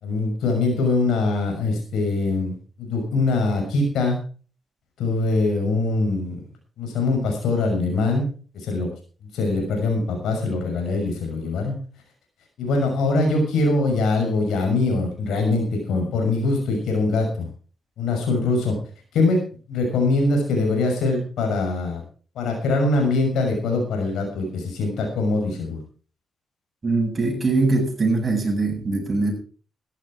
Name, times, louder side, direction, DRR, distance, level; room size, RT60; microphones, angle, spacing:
voice 1, 0.0-4.2 5.0-6.4 6.8-8.3 8.5-8.9 9.3-11.8 12.6-17.5 18.0-18.8 19.1-19.4 19.7-22.0 22.3-25.8, left 3 dB, 75° left, 2 dB, 6.1 m, -23 dB
voice 2, 26.8-29.3, right 3 dB, 40° right, 1 dB, 7.8 m, -22 dB
14.0 x 12.0 x 4.7 m, 0.40 s
supercardioid pair, 50°, 0 cm